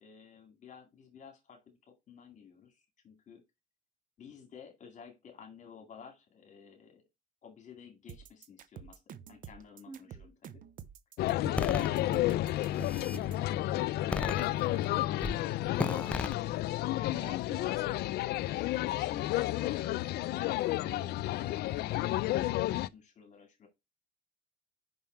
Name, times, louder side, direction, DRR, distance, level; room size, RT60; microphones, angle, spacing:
voice 1, 0.0-3.4 4.2-7.0 7.4-9.0 9.3-10.6 11.5-12.1 12.6-13.3 13.6-15.4 15.7-17.3 18.9-23.7, left 7 dB, 45° left, 2.3 m, -52 dB
sound 1, 8.1-13.5, right 8 dB, 55° right, 0.8 m, -48 dB
voice 2, 9.9-10.3 17.1-19.3, right 3 dB, 20° right, 3.4 m, -52 dB
sound 2, 11.2-22.9, left 15 dB, 75° left, 0.4 m, -31 dB
sound 3, 11.6-11.9 12.6-13.2 14.1-14.8 15.2-15.4 15.8-16.3, left 2 dB, 5° left, 0.4 m, -34 dB
5.7 x 5.5 x 4.5 m
cardioid pair, 110°, 17 cm